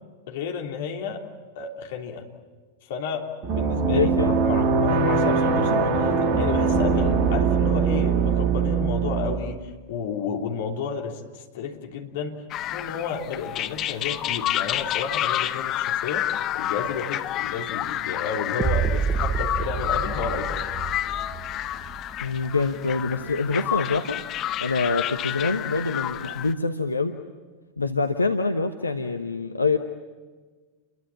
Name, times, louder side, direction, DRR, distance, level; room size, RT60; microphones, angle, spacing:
voice 1, 0.3-1.2 1.5-2.2 2.9-16.2 16.5-20.6, left 6 dB, 55° left, 2 dB, 3.2 m, -32 dB
sound 1, 3.4-9.4, right 5 dB, 40° right, 2.3 m, -22 dB
voice 2, 3.9-4.3 22.2-24.2 24.6-27.2 27.8-29.8, left 3 dB, 80° left, 6 dB, 1.1 m, -25 dB
sound 2, 12.5-26.5, left 12 dB, 35° left, 1.0 m, -29 dB
sound 3, 18.6-22.6, right 6 dB, 20° right, 0.7 m, -28 dB
29.5 x 23.0 x 7.3 m, 1.4 s
figure-of-eight pair, 90°, 0 cm